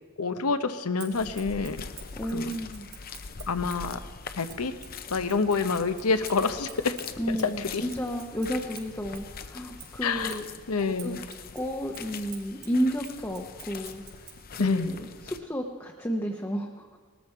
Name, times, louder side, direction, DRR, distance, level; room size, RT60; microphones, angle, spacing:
voice 1, 0.2-1.8 2.3-2.5 3.5-4.0 4.4-4.7 5.1-7.0 7.3-7.8 10.0-10.4 10.7-11.2 14.6-15.0, left 4 dB, 85° left, 10 dB, 0.8 m, -27 dB
Scissors, 1.0-3.9 4.5-9.3 9.8-14.4, right 9 dB, 85° right, 3.5 m, -49 dB
sound 1, 1.1-15.4, left 5 dB, 45° left, 0.7 m, -43 dB
voice 2, 2.1-2.9 7.2-10.4 11.0-11.2 11.5-14.2 14.5-17.0, equal, 10° left, 1 dB, 0.8 m, -32 dB
19.5 x 13.5 x 4.5 m, 1.5 s
head